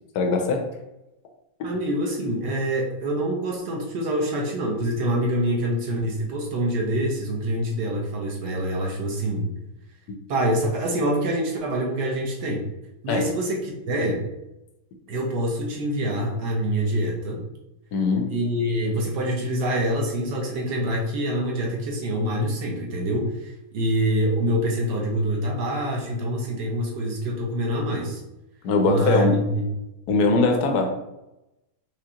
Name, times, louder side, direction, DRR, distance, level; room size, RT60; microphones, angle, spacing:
voice 1, 0.1-0.6 1.6-1.7 13.1-13.3 17.9-18.3 28.6-29.4 30.1-30.9, left 3 dB, 70° left, 3 dB, 0.9 m, -21 dB
voice 2, 1.6-9.5 10.3-12.7 13.0-14.3 15.1-17.4 18.3-28.2 28.8-29.6, right 1 dB, 60° right, 0 dB, 1.3 m, -25 dB
5.1 x 3.1 x 2.8 m, 0.92 s
omnidirectional pair, 2.3 m